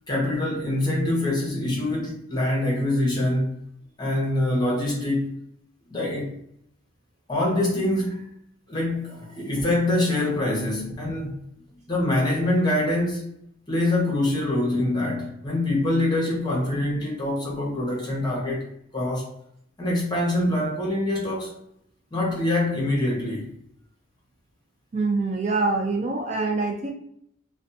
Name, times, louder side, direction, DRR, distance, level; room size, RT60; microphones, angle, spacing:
voice 1, 0.1-3.5 4.0-5.3 5.9-6.3 7.3-8.3 8.7-11.3 11.9-13.3 13.7-18.7 18.9-19.3 19.8-21.6 22.1-23.5, left 1 dB, 20° left, 0.9 m, -24 dB
voice 2, 24.9-26.9, right 3 dB, 35° right, 0.3 m, -25 dB
2.5 x 2.2 x 2.6 m
head